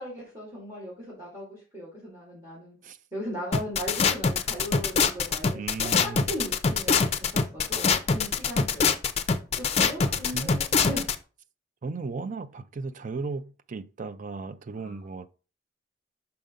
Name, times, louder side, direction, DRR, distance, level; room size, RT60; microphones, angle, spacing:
voice 1, 0.0-2.8 3.1-5.6 6.0-9.0 9.6-11.1 14.8-15.2, equal, 15° right, 2.4 m, -38 dB
sound 1, 3.5-11.2, left 5 dB, 35° left, 0.5 m, -24 dB
voice 2, 5.5-6.3 10.0-10.6 11.8-15.3, right 4 dB, 45° right, 0.5 m, -36 dB
5.7 x 5.3 x 3.7 m
head